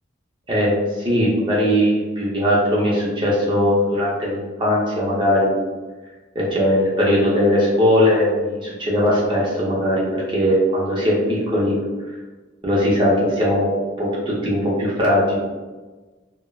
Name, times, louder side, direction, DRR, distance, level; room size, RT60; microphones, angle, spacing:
voice 1, 0.5-5.5 6.3-11.7 12.6-13.7 14.0-15.4, equal, 25° right, -6 dB, 0.6 m, -19 dB
3.2 x 2.1 x 2.3 m, 1.3 s
head